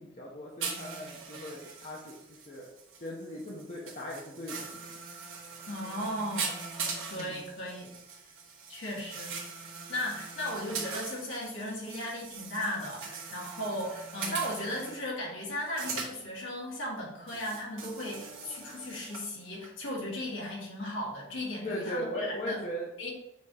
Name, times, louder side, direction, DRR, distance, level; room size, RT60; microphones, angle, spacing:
voice 1, 0.0-2.7 3.0-4.7 7.1-7.5 21.6-22.9, equal, 35° left, -3 dB, 0.8 m, -39 dB
sound 1, 0.6-15.0 15.6-16.2 17.3-19.3 19.6-19.7, right 5 dB, 85° right, 1.3 m, -41 dB
voice 2, 5.7-6.6 7.1-7.9 8.7-9.4 9.9-22.6 23.0-23.1, left 1 dB, 65° left, -3 dB, 2.0 m, -36 dB
6.9 x 2.9 x 4.8 m, 0.84 s
head